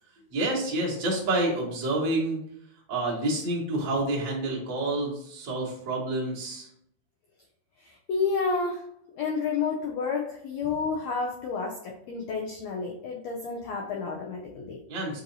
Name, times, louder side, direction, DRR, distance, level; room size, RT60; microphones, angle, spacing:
voice 1, 0.3-2.4 2.9-6.7 14.9-15.2, right 2 dB, 50° right, -5 dB, 1.4 m, -28 dB
voice 2, 7.8-8.8 9.1-14.8, left 4 dB, 80° left, 0 dB, 1.5 m, -30 dB
6.7 x 2.7 x 2.6 m, 0.71 s
omnidirectional pair, 3.6 m